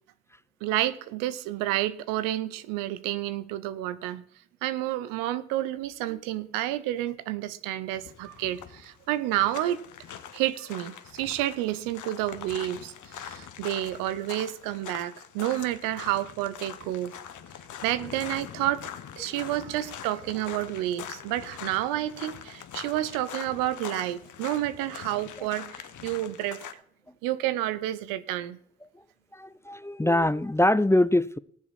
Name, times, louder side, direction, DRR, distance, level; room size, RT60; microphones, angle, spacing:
voice 1, 0.6-4.2 4.6-9.8 10.3-17.1 17.8-18.8 19.2-26.6 27.2-28.6, right 14 dB, 85° right, 0.7 m, -30 dB
sound 1, 7.9-26.7, left 9 dB, 65° left, 1.2 m, -43 dB
voice 2, 29.3-31.4, left 1 dB, 10° left, 0.5 m, -23 dB
19.5 x 7.2 x 4.2 m
hypercardioid pair, 45°, 33 cm